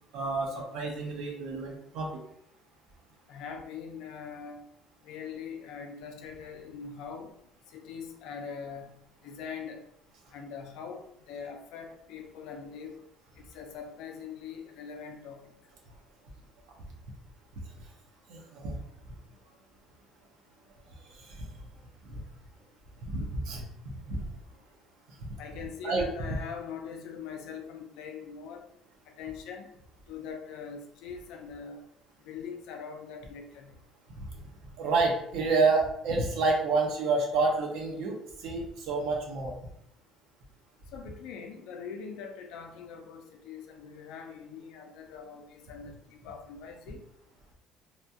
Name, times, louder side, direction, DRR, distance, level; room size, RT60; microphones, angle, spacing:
voice 1, 0.1-2.2 18.3-18.8 21.1-21.5 22.0-22.2 23.1-24.2 25.2-25.3 25.8-26.1 34.2-34.3 34.8-39.5, right 3 dB, 65° right, 0 dB, 0.8 m, -29 dB
voice 2, 3.3-4.6 5.0-7.3 7.7-9.8 10.3-12.9 13.5-15.4 25.4-28.7 29.2-29.7 30.1-31.8 32.3-33.8 40.9-47.0, left 6 dB, 70° left, 4 dB, 0.5 m, -42 dB
3.0 x 2.3 x 2.7 m, 0.75 s
cardioid pair, 150°, 0 cm